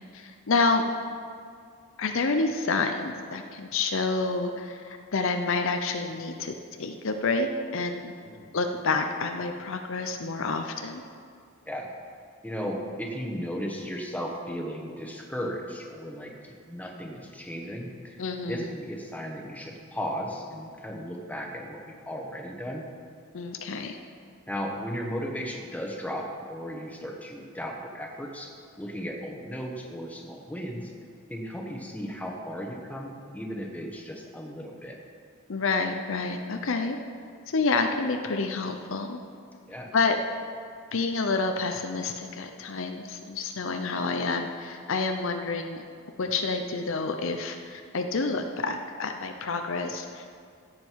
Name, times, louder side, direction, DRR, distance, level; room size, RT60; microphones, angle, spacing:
voice 1, 0.1-0.8 2.0-8.1 8.5-11.0 18.2-18.7 23.3-24.0 35.5-37.0 37.5-39.2 39.9-40.2 40.9-45.8 46.2-50.3, left 3 dB, 60° left, 5 dB, 0.6 m, -28 dB
voice 2, 12.4-18.1 18.4-22.8 24.5-28.5 28.8-30.9 31.3-35.0 39.7-39.9, equal, 5° left, 0 dB, 1.2 m, -35 dB
16.0 x 7.5 x 4.7 m, 2.2 s
head